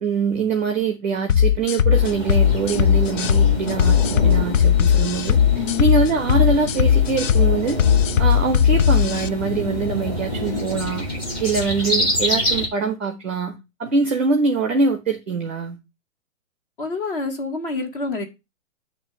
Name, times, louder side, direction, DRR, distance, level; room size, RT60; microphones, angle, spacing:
voice 1, 0.0-5.4 5.8-7.8 8.2-11.1 11.4-15.8, right 4 dB, 10° right, 0.5 m, -23 dB
sound 1, 1.3-9.3, left 9 dB, 70° left, 0.6 m, -17 dB
sound 2, 1.9-12.7, left 1 dB, 20° left, 1.7 m, -27 dB
voice 2, 5.5-5.9 16.8-18.3, left 4 dB, 40° left, 2.1 m, -27 dB
8.9 x 3.1 x 6.5 m
hypercardioid pair, 175°, 40 cm